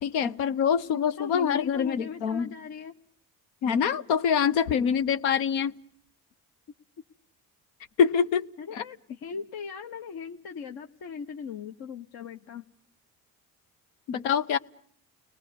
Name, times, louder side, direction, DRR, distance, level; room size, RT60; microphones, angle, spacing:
voice 1, 0.0-2.5 3.6-5.7 8.0-8.8 14.1-14.6, left 7 dB, 85° left, 1.0 m, -25 dB
voice 2, 1.2-3.0 8.6-12.6, left 6 dB, 65° left, 1.2 m, -39 dB
30.0 x 19.5 x 7.0 m
hypercardioid pair, 55°, 40 cm